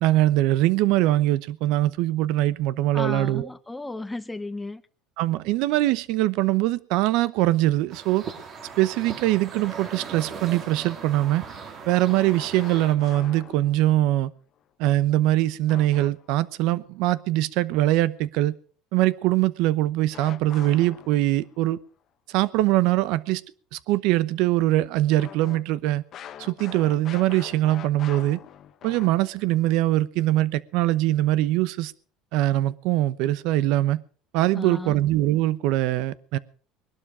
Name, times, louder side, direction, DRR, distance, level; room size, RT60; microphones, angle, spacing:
voice 1, 0.0-3.5 5.2-8.2 8.8-11.4 11.9-14.3 14.8-18.5 18.9-21.8 22.3-23.4 23.7-26.0 26.4-28.4 28.8-31.9 32.3-34.0 34.3-36.4, right 15 dB, 70° right, 0.9 m, -22 dB
voice 2, 2.9-4.8 34.5-35.0, left 2 dB, 10° left, 0.8 m, -34 dB
sound 1, 7.9-12.9, right 5 dB, 45° right, 3.2 m, -39 dB
sound 2, 12.1-14.0 15.7-16.5 20.1-21.6 25.2-29.5, left 10 dB, 45° left, 1.1 m, -43 dB
21.0 x 12.0 x 5.0 m
supercardioid pair, 120°, 0 cm